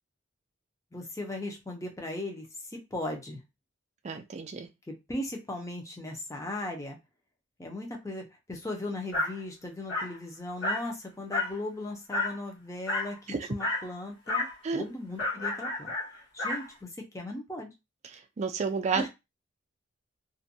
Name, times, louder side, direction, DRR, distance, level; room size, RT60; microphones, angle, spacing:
voice 1, 0.9-3.4 4.9-7.0 7.6-15.9 16.3-17.7 18.9-19.1, left 1 dB, 15° left, 2 dB, 0.5 m, -38 dB
voice 2, 4.0-4.7 13.3-13.4 14.6-14.8 18.1-19.1, right 5 dB, 35° right, 7 dB, 0.3 m, -31 dB
Dog, 9.1-9.4 9.9-10.2 10.6-10.9 11.3-11.6 12.1-12.4 12.9-13.2 13.6-13.9 14.3-14.6 15.2-16.7, left 2 dB, 60° left, 1.2 m, -31 dB
2.5 x 2.2 x 2.6 m, 0.24 s
head